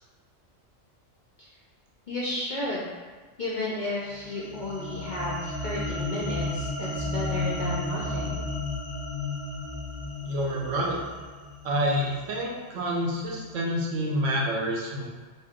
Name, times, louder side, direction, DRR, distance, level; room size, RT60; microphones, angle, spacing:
voice 1, 2.1-2.9 3.4-8.5, left 2 dB, 60° left, -7 dB, 0.5 m, -33 dB
sound 1, 4.1-12.6, left 2 dB, 10° right, 0.5 m, -33 dB
voice 2, 10.2-11.0 11.6-15.1, equal, 80° right, -1 dB, 0.9 m, -28 dB
2.7 x 2.2 x 3.5 m, 1.4 s
omnidirectional pair, 1.3 m